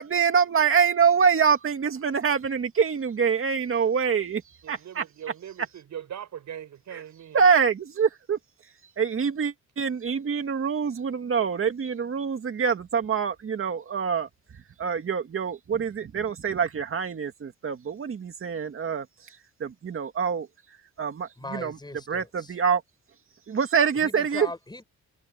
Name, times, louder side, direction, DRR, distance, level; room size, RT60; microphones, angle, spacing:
voice 1, 0.0-4.4 4.7-5.0 6.9-7.0 7.3-8.4 9.0-14.3 14.8-19.1 19.6-20.5 21.0-21.8 22.1-22.8 23.5-24.5, right 6 dB, 40° right, 2.3 m, -25 dB
voice 2, 4.6-7.4, right 9 dB, 65° right, 6.5 m, -40 dB
voice 3, 21.4-22.5 23.9-24.8, left 2 dB, 15° left, 7.1 m, -39 dB
cardioid pair, 140°, 31 cm